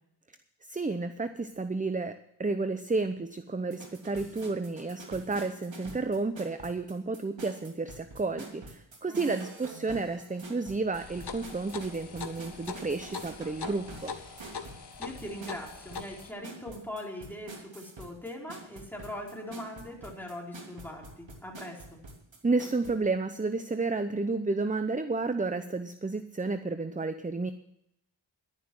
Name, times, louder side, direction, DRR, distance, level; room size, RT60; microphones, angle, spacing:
voice 1, 0.6-14.1 22.4-27.5, right 3 dB, 15° right, 10 dB, 0.7 m, -31 dB
sound 1, 3.6-22.9, right 3 dB, 70° right, 3.1 m, -47 dB
sound 2, 10.9-16.3, left 5 dB, 55° left, 1.4 m, -42 dB
voice 2, 14.8-22.0, left 1 dB, 5° left, -1 dB, 4.3 m, -41 dB
12.0 x 10.5 x 6.2 m, 0.78 s
wide cardioid pair, 70°, 47 cm